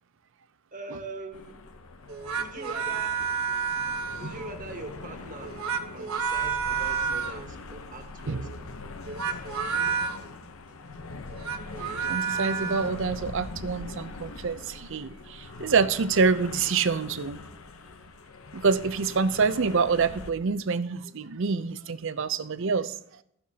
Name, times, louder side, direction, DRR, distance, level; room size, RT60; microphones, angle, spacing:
voice 1, 0.7-1.6 2.3-3.2 4.1-5.6 5.9-9.4, right 2 dB, 40° right, 4 dB, 1.6 m, -42 dB
sound 1, 1.3-20.3, left 3 dB, 80° left, 0.8 m, -42 dB
sound 2, 2.1-4.6 5.4-7.5 9.0-10.2 11.3-12.9, right 6 dB, 85° right, 1.1 m, -30 dB
voice 2, 12.1-17.4 18.5-22.9, right 5 dB, 65° right, 12 dB, 0.6 m, -26 dB
15.0 x 13.5 x 2.9 m, 0.74 s
head